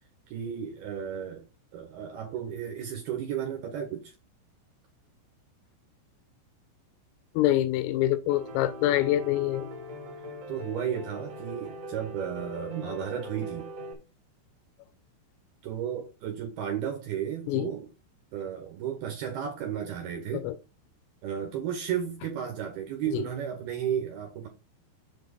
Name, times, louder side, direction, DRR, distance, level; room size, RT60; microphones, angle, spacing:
voice 1, 0.3-1.5 1.7-4.1 10.5-13.7 15.6-17.9 18.3-20.5 21.2-24.5, right 9 dB, 70° right, 2.5 m, -33 dB
voice 2, 7.4-9.7 17.5-17.7 20.3-20.6 23.1-23.2, left 14 dB, 80° left, 3.3 m, -25 dB
Piano, 8.3-13.9, equal, 40° right, 2.6 m, -41 dB
7.9 x 4.5 x 5.4 m
omnidirectional pair, 6.0 m